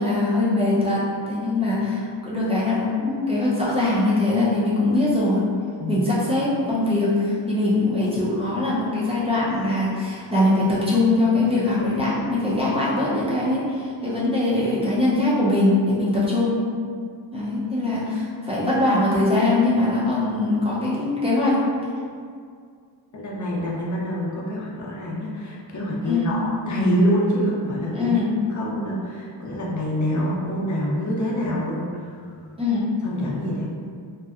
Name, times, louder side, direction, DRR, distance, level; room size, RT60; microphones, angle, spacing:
voice 1, 0.0-5.4 5.9-16.6 17.3-21.6 26.1-26.3 27.9-28.3 32.6-32.9, left 2 dB, 15° right, -9 dB, 0.5 m, -22 dB
voice 2, 23.1-28.1 28.5-32.3 33.0-33.6, equal, 40° left, -4 dB, 0.5 m, -26 dB
2.7 x 2.1 x 2.3 m, 2.2 s
wide cardioid pair, 130°, 46 cm